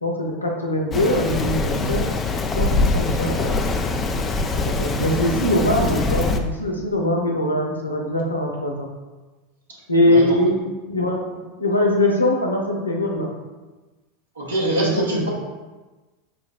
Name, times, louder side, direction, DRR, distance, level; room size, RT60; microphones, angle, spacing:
voice 1, 0.0-2.1 2.6-3.7 4.5-8.9 9.9-13.3 14.6-15.3, left 1 dB, 90° left, 0 dB, 0.5 m, -22 dB
Rain, 0.9-6.4, left 3 dB, 25° left, 0.3 m, -23 dB
voice 2, 9.7-10.4 14.3-15.3, right 1 dB, 80° right, -4 dB, 0.9 m, -25 dB
5.1 x 2.0 x 2.4 m, 1.2 s
figure-of-eight pair, 85°, 0 cm